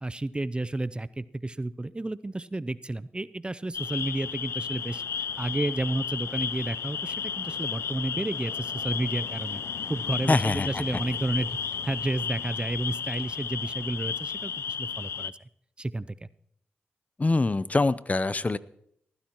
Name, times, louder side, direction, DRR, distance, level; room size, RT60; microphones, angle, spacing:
voice 1, 0.0-5.0 5.4-9.6 9.9-11.6 11.8-15.4 15.8-16.3, right 2 dB, 25° right, 16 dB, 0.5 m, -31 dB
sound 1, 3.7-15.3, left 7 dB, 75° left, 0.5 m, -33 dB
voice 2, 10.3-10.7 17.2-18.6, left 3 dB, 35° left, 17 dB, 0.6 m, -24 dB
20.5 x 14.5 x 3.0 m, 0.71 s
cardioid pair, 50°, 4 cm